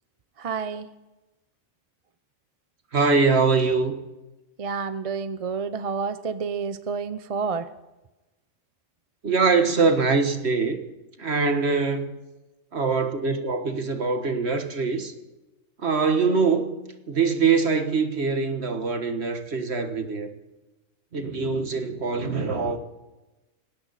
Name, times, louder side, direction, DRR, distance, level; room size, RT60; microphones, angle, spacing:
voice 1, 0.4-0.9 4.6-7.6, right 5 dB, 35° right, 0.6 m, -29 dB
voice 2, 2.9-4.0 9.2-10.8 11.2-12.1 12.7-15.1 15.8-16.8 17.1-20.3 21.1-22.8, right 4 dB, 50° right, 1.7 m, -23 dB
20.0 x 17.5 x 4.2 m
omnidirectional pair, 1.4 m